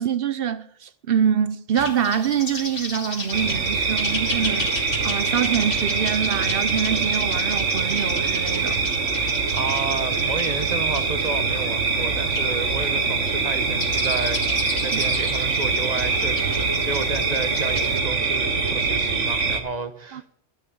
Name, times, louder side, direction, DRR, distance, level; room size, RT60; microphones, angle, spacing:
voice 1, 0.0-4.7 5.0-8.8 14.9-15.0 20.1-20.2, right 8 dB, 55° right, 0.8 m, -25 dB
sound 1, 1.8-18.0, left 2 dB, 50° left, 2.3 m, -35 dB
sound 2, 3.3-19.6, right 4 dB, 85° right, 1.7 m, -24 dB
voice 2, 9.5-20.3, right 4 dB, 40° right, 1.1 m, -32 dB
10.5 x 10.5 x 6.7 m
omnidirectional pair, 1.2 m